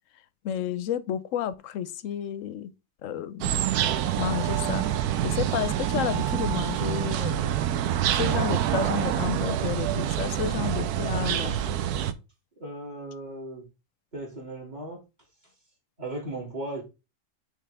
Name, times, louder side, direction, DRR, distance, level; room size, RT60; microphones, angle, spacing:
voice 1, 0.4-2.7 3.0-3.5 4.2-4.8 5.2-7.5 8.2-11.6, left 9 dB, 65° left, 0.9 m, -31 dB
sound 1, 3.4-12.1, right 11 dB, 85° right, 1.1 m, -26 dB
voice 2, 12.6-13.7 14.1-15.0 16.0-16.8, right 1 dB, 30° right, 2.7 m, -36 dB
8.8 x 3.4 x 3.4 m
omnidirectional pair, 1.6 m